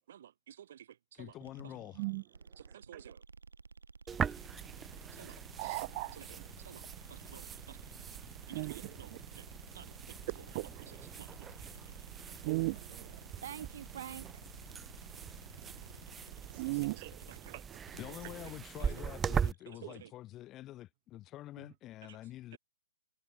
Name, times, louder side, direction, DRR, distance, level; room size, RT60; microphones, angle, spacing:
voice 1, 0.0-1.3 1.6-1.8 2.6-3.2 5.1-5.8 6.1-7.8 8.5-9.5 9.7-11.3 13.4-14.3 16.7-17.4 18.1-18.2 18.8-20.1 22.0-22.2 22.5-22.6, right 10 dB, 55° right, 5.1 m, -52 dB
voice 2, 1.2-2.0 17.9-22.6, left 14 dB, 25° left, 2.4 m, -47 dB
sound 1, 1.4-19.6, right 4 dB, 80° right, 4.0 m, -53 dB
sound 2, 4.1-19.5, right 7 dB, 15° right, 1.0 m, -41 dB
voice 3, 5.6-6.1 8.5-8.7 10.5-10.6 12.4-13.2 16.5-17.1 17.5-17.6, right 24 dB, 35° right, 0.7 m, -35 dB
figure-of-eight pair, 130°, 0 cm